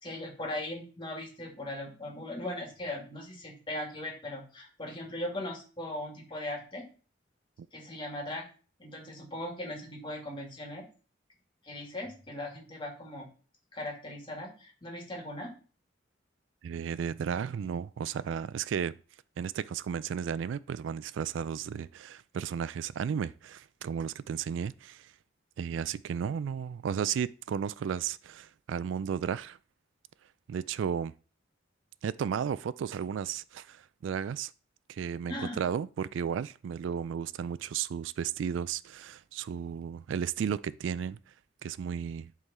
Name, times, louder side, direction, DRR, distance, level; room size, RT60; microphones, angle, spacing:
voice 1, 0.0-6.8 7.7-8.5 8.8-10.9 11.6-13.3 13.7-15.5 35.3-35.6, left 1 dB, 25° left, 2.2 m, -39 dB
voice 2, 16.6-18.9 19.4-25.1 25.6-29.6 30.5-31.1 32.0-34.5 34.9-41.2 41.6-42.3, right 7 dB, 70° right, 0.3 m, -34 dB
11.0 x 3.7 x 4.1 m
head